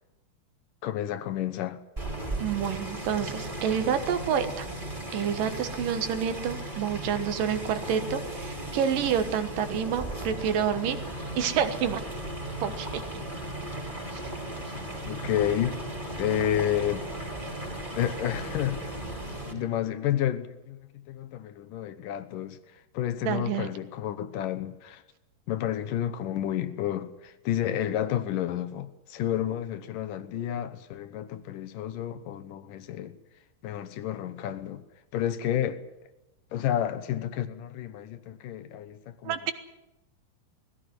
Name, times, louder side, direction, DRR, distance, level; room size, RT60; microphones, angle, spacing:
voice 1, 0.8-1.8 15.1-15.8 16.2-17.1 18.0-18.9 19.5-25.0 25.5-33.2 33.6-34.8 35.1-35.8 36.5-39.4, left 11 dB, 70° left, 2.4 m, -30 dB
sound 1, 2.0-19.5, right 1 dB, 10° right, 4.8 m, -36 dB
voice 2, 2.4-4.7 5.1-11.0 11.4-12.0 12.6-13.0 14.7-14.8 23.3-23.7 39.2-39.5, right 8 dB, 65° right, 2.8 m, -28 dB
20.5 x 16.5 x 9.7 m
omnidirectional pair, 4.5 m